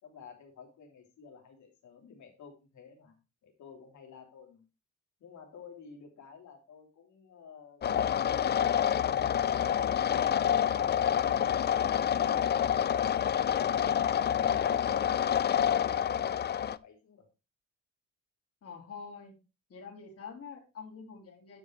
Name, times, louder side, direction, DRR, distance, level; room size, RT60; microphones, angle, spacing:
voice 1, 0.0-3.2 3.4-4.6 5.2-11.7 12.0-13.0 15.6-17.2, left 6 dB, 70° left, 3 dB, 3.2 m, -52 dB
sound 1, 7.8-16.8, left 9 dB, 35° left, 0.4 m, -27 dB
voice 2, 14.1-15.0 18.6-19.4 19.7-21.6, left 5 dB, 50° left, 0 dB, 3.6 m, -46 dB
10.0 x 5.5 x 4.6 m, 0.29 s
cardioid pair, 90°, 30 cm